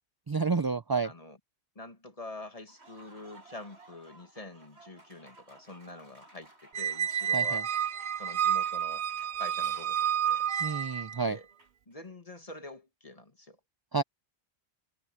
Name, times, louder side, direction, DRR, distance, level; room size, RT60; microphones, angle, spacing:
voice 1, 0.3-1.1 7.3-7.6 10.6-11.4 13.9-14.0, right 4 dB, 35° right, 0.3 m, -29 dB
voice 2, 1.0-1.4 1.8-7.6 8.2-9.0 9.4-10.4 11.3-11.5 11.9-13.6, left 2 dB, 35° left, 2.1 m, -46 dB
Applause, 2.5-11.9, right 2 dB, 85° right, 6.1 m, -57 dB
Squeak, 6.7-11.2, right 9 dB, 55° right, 0.7 m, -30 dB
omnidirectional pair, 1.1 m